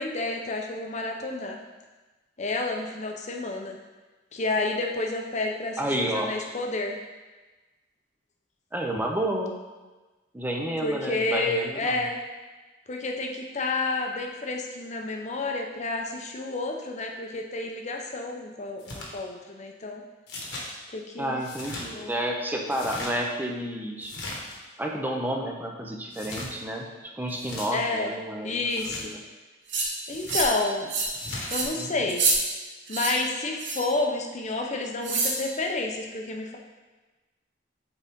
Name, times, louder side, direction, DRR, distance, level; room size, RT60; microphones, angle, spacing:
voice 1, 0.0-1.6 2.4-3.8 4.3-7.0 10.8-12.2 12.9-20.0 20.9-21.4 21.9-22.1 27.7-28.1 28.4-29.1 30.1-30.9 31.5-32.3 32.9-36.6, left 2 dB, 35° left, 2 dB, 0.7 m, -30 dB
voice 2, 5.8-6.3 8.7-9.5 10.3-12.0 21.2-24.1 24.8-26.9 27.2-28.6 29.0-29.2 31.7-32.1, right 1 dB, 10° right, 1 dB, 0.7 m, -30 dB
sound 1, 18.8-19.1 20.3-20.7 21.4-21.9 22.7-23.1 24.0-24.6 26.1-26.5 27.3-27.7 28.7-29.1 30.1-30.5 31.1-31.5, left 2 dB, 65° left, 1.3 m, -38 dB
sound 2, 29.7-29.9 30.3-30.6 30.9-31.2 31.5-31.7 32.1-32.4 32.9-33.1 33.6-33.9 35.0-35.4, right 3 dB, 65° right, 1.2 m, -26 dB
8.3 x 4.0 x 3.6 m, 1.2 s
head